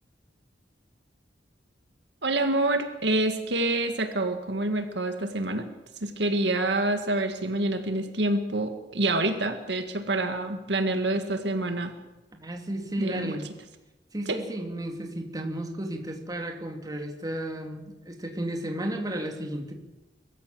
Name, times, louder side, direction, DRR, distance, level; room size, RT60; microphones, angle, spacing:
voice 1, 2.2-5.7 6.0-11.9 13.0-13.4 14.3-14.4, right 2 dB, 70° right, 7 dB, 2.0 m, -27 dB
voice 2, 12.3-13.5 14.1-19.7, right 1 dB, 20° right, 3 dB, 2.8 m, -33 dB
23.5 x 14.5 x 7.6 m, 1.0 s
head